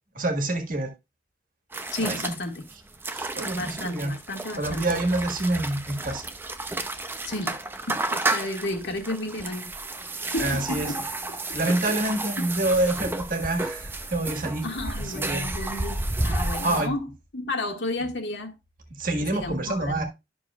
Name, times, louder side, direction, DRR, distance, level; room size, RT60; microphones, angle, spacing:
voice 1, 0.1-0.9 2.0-2.2 3.1-4.1 4.6-6.2 10.4-10.9 11.5-14.7 15.0-15.5 16.6-16.9 19.0-20.0, right 2 dB, 50° right, 1.6 m, -27 dB
sound 1, 1.7-16.9, right 2 dB, 15° right, 0.6 m, -32 dB
voice 2, 1.9-2.7 3.6-5.0 7.2-7.6 7.9-9.7 10.3-11.0 11.7-11.8 12.4-12.5 14.6-17.1 17.3-18.5 19.3-20.0, left 2 dB, 85° left, 1.8 m, -32 dB
12.0 x 6.2 x 2.4 m
head